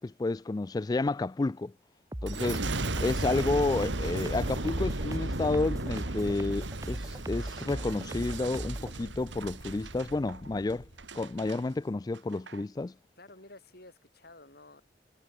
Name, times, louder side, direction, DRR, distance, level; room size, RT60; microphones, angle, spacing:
voice 1, 0.0-1.7 2.2-2.6 3.0-10.9 11.1-12.9, left 2 dB, 20° left, 0.3 m, -30 dB
sound 1, 2.1-8.9, right 1 dB, 20° right, 1.2 m, -38 dB
Boom, 2.3-11.6 12.1-12.6, right 2 dB, 80° right, 2.4 m, -35 dB
voice 2, 13.2-14.8, left 2 dB, 55° left, 6.9 m, -52 dB
head